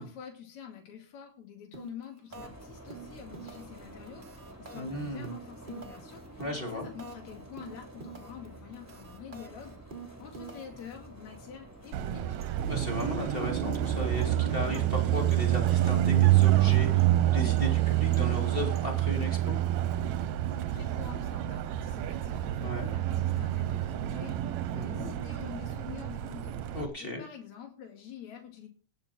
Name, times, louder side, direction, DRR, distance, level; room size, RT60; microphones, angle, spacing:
voice 1, 0.0-6.4 6.7-9.8 10.2-12.4 20.5-28.7, left 9 dB, 70° left, 2 dB, 3.5 m, -47 dB
sound 1, 1.7-2.0 2.3-2.6 2.9-3.8 4.1-7.3 7.6-8.5 8.7-10.9, right 4 dB, 30° right, 0.8 m, -46 dB
sound 2, 2.3-18.9, right 1 dB, 5° right, 2.8 m, -50 dB
voice 2, 4.7-5.3 6.4-6.9 12.7-19.5 22.6-22.9 24.7-25.1 26.7-27.2, left 1 dB, 20° left, 1 dB, 2.3 m, -36 dB
Car passing by, 11.9-26.9, right 13 dB, 75° right, 2.0 m, -27 dB
18.0 x 6.8 x 4.2 m, 0.40 s
omnidirectional pair, 3.3 m